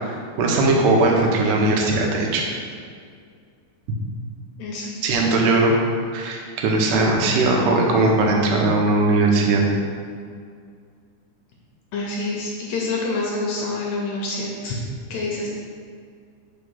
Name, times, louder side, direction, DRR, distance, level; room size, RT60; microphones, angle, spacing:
voice 1, 0.0-2.4 5.0-5.7 6.1-9.7, right 2 dB, 80° right, 0 dB, 2.4 m, -19 dB
voice 2, 4.6-5.2 11.9-14.8 15.1-15.5, left 3 dB, 75° left, -3 dB, 1.8 m, -27 dB
4.7 x 4.4 x 5.4 m, 2.2 s
omnidirectional pair, 3.7 m